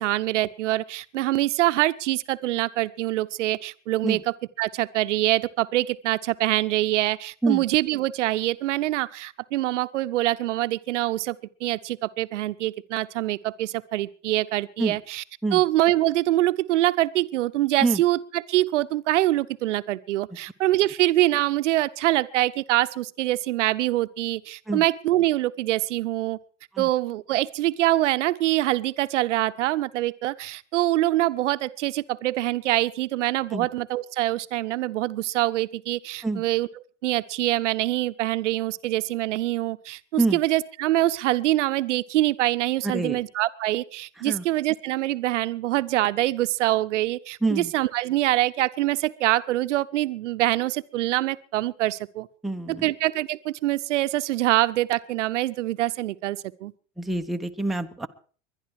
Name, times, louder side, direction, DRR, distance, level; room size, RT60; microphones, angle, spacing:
voice 1, 0.0-11.4 11.6-15.2 15.5-26.4 26.8-52.3 52.7-56.7, right 15 dB, 70° right, 14 dB, 0.9 m, -24 dB
voice 2, 42.8-43.2 44.2-44.4 47.4-47.7 52.4-52.9 57.0-58.1, right 2 dB, ahead, 4 dB, 1.0 m, -26 dB
22.0 x 10.5 x 4.8 m, 0.42 s
hypercardioid pair, 90°, 37 cm